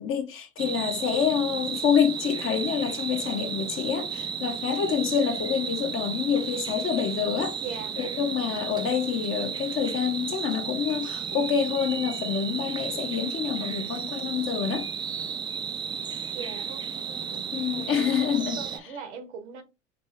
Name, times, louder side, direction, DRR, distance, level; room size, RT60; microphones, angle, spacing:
voice 1, 0.0-7.6 8.0-14.9 17.5-18.6, left 7 dB, 35° left, 0.8 m, -27 dB
sound 1, 0.6-18.8, right 7 dB, 15° right, 0.3 m, -34 dB
voice 2, 7.6-8.0 16.3-18.2 18.6-19.6, right 6 dB, 70° right, 1.1 m, -40 dB
5.4 x 2.7 x 2.7 m
figure-of-eight pair, 80°, 37 cm